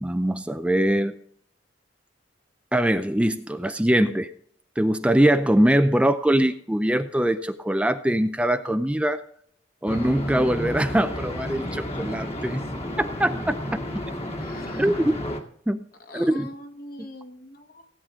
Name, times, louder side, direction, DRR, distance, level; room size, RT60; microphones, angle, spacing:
voice 1, 0.0-1.1 2.7-4.3 4.8-9.2 9.8-12.7 13.0-13.6 14.7-15.1 15.7-15.8 16.1-16.5, right 1 dB, 5° right, 9 dB, 0.5 m, -22 dB
sound 1, 9.9-15.4, left 1 dB, 35° left, 1.9 m, -32 dB
voice 2, 14.4-14.9 16.1-17.9, left 1 dB, 55° left, 3 dB, 2.0 m, -42 dB
16.5 x 8.9 x 3.7 m, 0.62 s
head